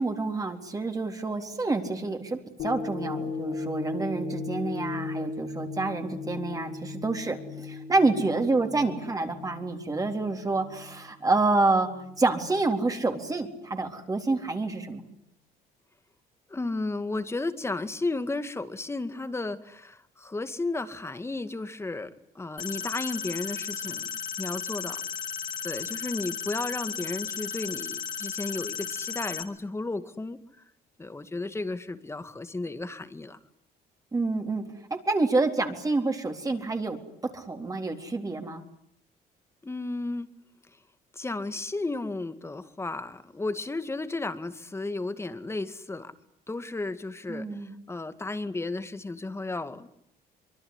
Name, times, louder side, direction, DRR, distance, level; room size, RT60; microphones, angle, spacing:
voice 1, 0.0-11.9 12.2-15.1 34.1-34.6 34.9-37.0 37.3-38.6 47.3-47.7, right 3 dB, 20° right, 4 dB, 3.9 m, -28 dB
sound 1, 2.6-11.0 11.5-11.6, left 3 dB, 75° left, 6.6 m, -36 dB
voice 2, 16.5-24.1 24.4-25.0 25.6-30.4 31.0-33.4 39.6-40.3 41.1-46.1 46.5-49.9, left 2 dB, 15° left, 11 dB, 2.2 m, -33 dB
sound 2, 22.6-29.4, left 8 dB, 50° left, 4.0 m, -35 dB
25.0 x 23.5 x 9.8 m, 0.72 s
cardioid pair, 110°, 17 cm